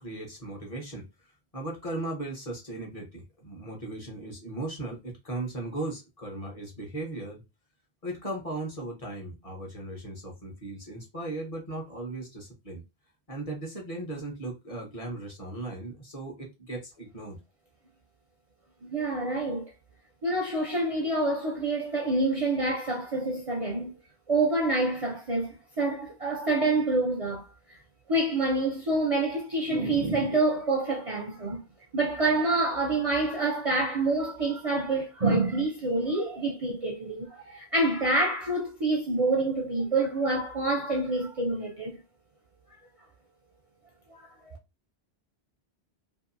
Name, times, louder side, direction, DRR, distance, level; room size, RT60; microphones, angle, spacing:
voice 1, 0.0-7.4 8.0-12.8 13.3-17.4, right 2 dB, 35° left, 0.9 m, -37 dB
voice 2, 18.8-19.7 20.2-23.9 24.3-27.5 28.1-31.6 31.9-42.0 44.1-44.6, right 2 dB, 40° right, 0.5 m, -27 dB
2.7 x 2.6 x 2.5 m
omnidirectional pair, 1.1 m